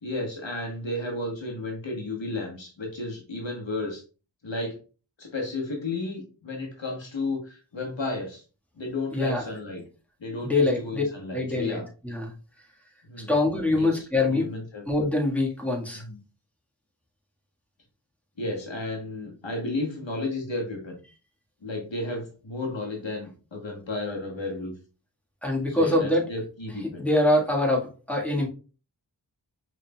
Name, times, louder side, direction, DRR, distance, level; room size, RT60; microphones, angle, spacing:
voice 1, 0.0-4.0 4.4-4.8 5.2-8.4 8.7-9.8 10.2-11.9 13.0-13.3 13.7-14.0 14.3-14.8 15.9-16.2 18.4-21.0 21.6-24.7 25.7-27.1, left 2 dB, 85° left, 0 dB, 1.3 m, -33 dB
voice 2, 9.1-9.4 10.4-11.0 11.3-11.8 12.0-12.3 13.3-14.5 14.9-16.0 25.4-26.3 27.0-28.5, left 2 dB, 5° left, -1 dB, 1.5 m, -24 dB
5.3 x 3.7 x 2.2 m, 0.34 s
wide cardioid pair, 50°, 44 cm